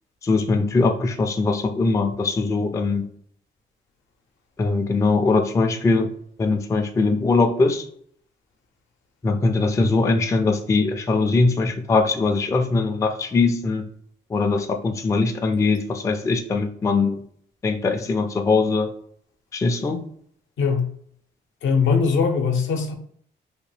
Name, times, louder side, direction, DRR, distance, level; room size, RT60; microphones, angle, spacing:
voice 1, 0.2-3.1 4.6-6.1 6.4-7.8 9.2-13.8 14.3-17.2 17.6-18.9 19.5-20.0, left 3 dB, 15° left, 5 dB, 0.3 m, -21 dB
voice 2, 20.6-20.9 21.6-22.9, left 5 dB, 70° left, 4 dB, 0.6 m, -20 dB
2.8 x 2.2 x 3.1 m, 0.63 s
cardioid pair, 90°, 20 cm